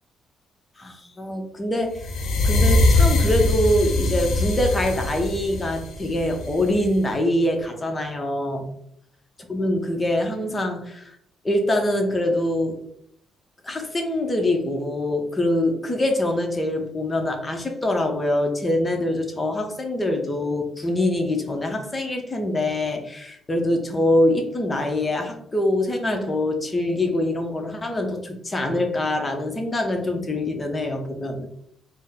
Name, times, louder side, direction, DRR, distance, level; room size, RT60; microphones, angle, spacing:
voice 1, 0.8-2.1 2.4-8.7 9.4-11.2 11.4-12.8 13.6-31.5, left 1 dB, 25° left, 3 dB, 0.8 m, -24 dB
sound 1, 2.0-7.0, left 2 dB, 75° left, 0.6 m, -22 dB
4.0 x 2.1 x 3.5 m, 0.69 s
cardioid pair, 90°, 0 cm